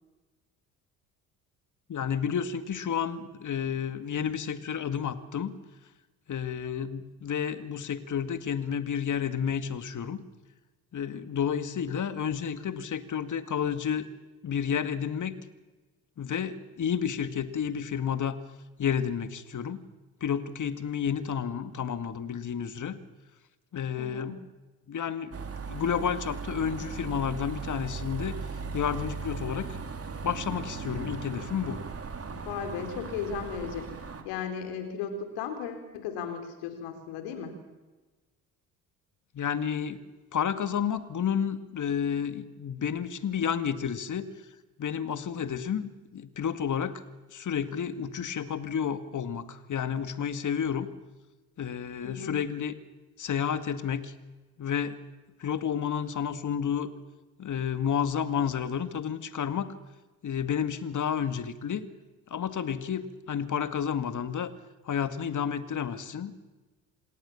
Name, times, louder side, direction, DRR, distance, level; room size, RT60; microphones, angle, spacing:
voice 1, 1.9-5.6 6.3-10.2 10.9-14.1 14.4-15.4 16.2-18.4 18.8-19.9 20.2-23.0 23.7-24.4 24.9-25.3 25.7-28.5 28.7-29.7 30.2-31.8 39.3-40.0 40.3-44.3 44.8-47.0 47.3-50.9 51.6-52.7 53.2-54.1 54.6-55.0 55.4-56.9 57.4-59.7 60.2-61.8 62.3-64.5 64.8-66.3, left 8 dB, 40° left, 11 dB, 2.1 m, -31 dB
voice 2, 24.0-24.4 32.3-34.0 34.2-37.6 52.0-52.4, left 6 dB, 70° left, 7 dB, 4.2 m, -36 dB
sound 1, 25.3-34.2, right 5 dB, 30° right, 3.4 m, -38 dB
27.5 x 18.5 x 7.2 m, 1.2 s
hypercardioid pair, 60°, 44 cm